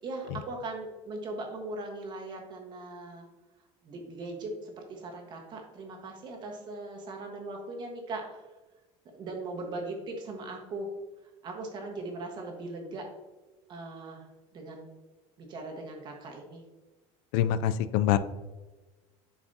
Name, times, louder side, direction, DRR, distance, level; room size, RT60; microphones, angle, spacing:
voice 1, 0.0-3.3 3.8-8.4 9.1-10.9 11.4-13.1 13.7-14.3 14.5-14.9 15.4-16.6, right 2 dB, 30° right, 2 dB, 1.4 m, -39 dB
voice 2, 17.3-18.2, left 11 dB, 70° left, 13 dB, 0.4 m, -25 dB
10.0 x 4.8 x 2.8 m, 1.2 s
cardioid pair, 165°, 14 cm